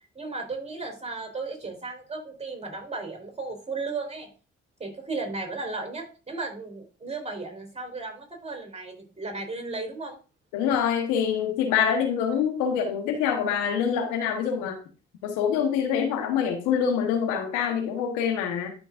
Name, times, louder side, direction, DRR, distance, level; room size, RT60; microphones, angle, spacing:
voice 1, 0.1-4.3 4.8-10.2, right 3 dB, 20° right, 3 dB, 3.9 m, -35 dB
voice 2, 10.5-14.7 15.2-18.7, left 7 dB, 80° left, 4 dB, 1.3 m, -25 dB
11.5 x 5.2 x 2.5 m, 0.36 s
hypercardioid pair, 50°, 29 cm